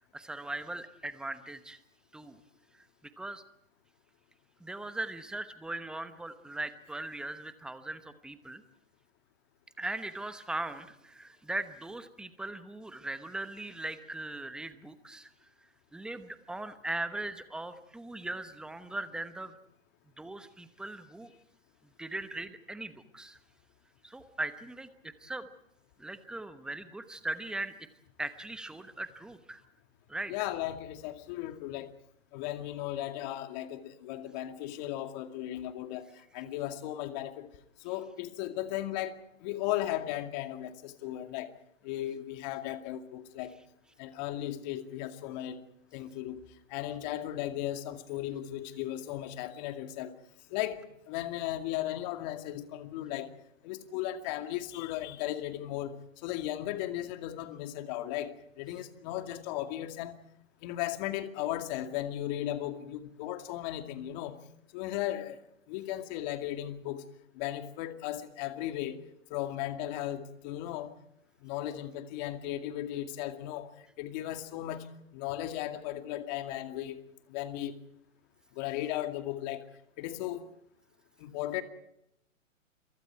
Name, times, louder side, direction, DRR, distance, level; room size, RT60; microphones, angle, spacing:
voice 1, 0.1-1.8 2.1-2.4 3.2-3.4 4.6-8.6 9.8-15.3 15.9-19.5 20.2-21.3 22.0-23.4 24.0-25.5 26.0-27.7 28.2-29.6 30.1-30.3, right 2 dB, ahead, 1.0 m, -39 dB
voice 2, 30.3-31.9 32.3-37.5 37.8-41.5 41.8-43.5 44.0-45.6 45.9-46.4 46.7-50.2 50.5-53.3 53.6-60.2 60.6-64.4 64.7-65.4 65.7-67.1 67.3-69.0 69.3-70.9 71.4-73.7 74.0-74.9 75.1-77.0 77.3-77.8 78.5-79.6 80.0-80.5 81.2-81.6, left 13 dB, 35° left, 2.3 m, -36 dB
30.0 x 24.0 x 4.7 m
hypercardioid pair, 130°, 40 cm